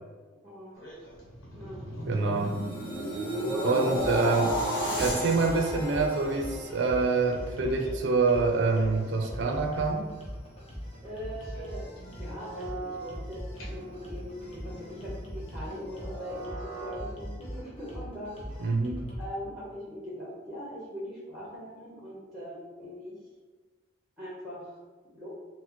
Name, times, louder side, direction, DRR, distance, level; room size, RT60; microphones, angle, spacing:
voice 1, 0.4-0.8 1.5-1.8 3.5-3.9 11.0-18.7 19.2-23.2 24.2-24.7 25.1-25.3, equal, ahead, -7 dB, 0.8 m, -41 dB
sound 1, 0.7-2.6 3.0-3.1 3.5-5.6 5.9-6.5 7.4-8.0 8.5-9.5 11.3-13.1 13.5-17.0, right 2 dB, 90° left, 1.0 m, -45 dB
sound 2, 1.1-7.3 7.8-8.0, equal, 45° left, 1.1 m, -33 dB
voice 2, 2.1-2.5 3.6-4.5 5.0-10.1 18.6-19.1, right 4 dB, 65° right, 2 dB, 0.4 m, -26 dB
sound 3, 4.0-19.3, equal, 30° left, 0.8 m, -41 dB
4.2 x 2.1 x 2.9 m, 1.4 s
head